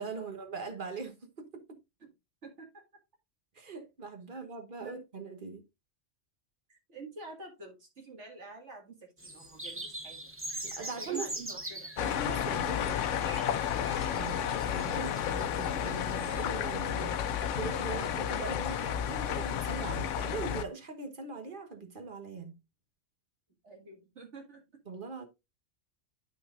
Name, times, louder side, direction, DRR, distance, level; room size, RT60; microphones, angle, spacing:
voice 1, 0.0-1.8 3.5-5.6 10.6-11.3 12.0-13.0 14.1-22.6 24.9-25.3, right 4 dB, 45° right, 1.4 m, -41 dB
voice 2, 2.4-2.8 4.3-4.5 4.8-5.0 6.7-10.3 10.8-11.9 14.1-14.6 23.6-24.6, right 3 dB, 70° right, 2.3 m, -48 dB
sound 1, 9.2-16.4, right 1 dB, 10° right, 0.8 m, -43 dB
sound 2, 12.0-20.6, left 9 dB, 80° left, 0.9 m, -32 dB
10.5 x 5.8 x 2.4 m
omnidirectional pair, 1.3 m